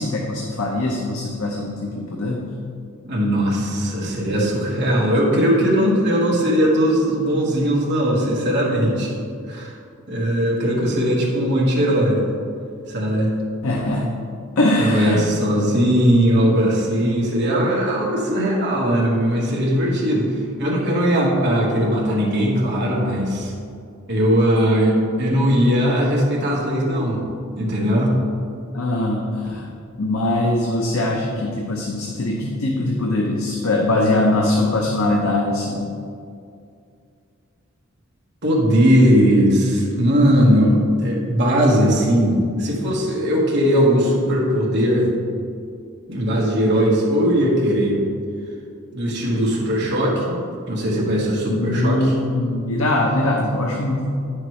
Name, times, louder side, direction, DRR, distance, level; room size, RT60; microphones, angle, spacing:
voice 1, 0.0-2.5 13.6-14.1 14.6-15.3 28.7-29.7 30.0-35.9 51.5-54.1, left 2 dB, 85° left, 0 dB, 0.8 m, -22 dB
voice 2, 3.0-9.1 9.5-9.7 10.1-12.2 12.9-13.3 14.8-23.5 24.1-27.2 27.6-28.1 38.4-45.1 46.1-48.0 48.9-50.4 50.7-52.1, equal, 55° right, -4 dB, 1.6 m, -19 dB
9.2 x 6.5 x 3.2 m, 2.4 s
head